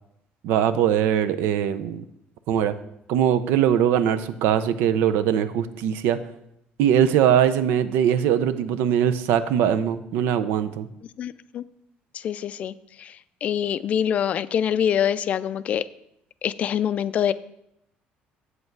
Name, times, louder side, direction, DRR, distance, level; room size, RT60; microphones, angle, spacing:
voice 1, 0.4-2.0 2.5-2.7 3.1-6.2 6.8-10.9, right 9 dB, 85° right, 12 dB, 0.6 m, -21 dB
voice 2, 11.2-11.6 12.1-15.8 16.4-17.3, left 9 dB, 40° left, 15 dB, 0.3 m, -25 dB
8.0 x 7.9 x 4.7 m, 0.79 s
cardioid pair, 155°, 3 cm